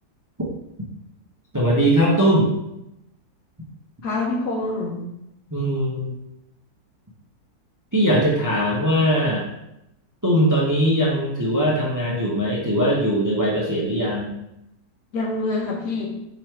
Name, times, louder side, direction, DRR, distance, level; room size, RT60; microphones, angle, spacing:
voice 1, 1.5-2.5 5.5-6.1 7.9-9.5 10.2-14.3, equal, 20° right, -4 dB, 0.4 m, -20 dB
voice 2, 4.0-5.1 15.1-16.1, left 2 dB, 80° left, -1 dB, 1.5 m, -26 dB
3.8 x 3.1 x 4.5 m, 0.84 s
omnidirectional pair, 1.7 m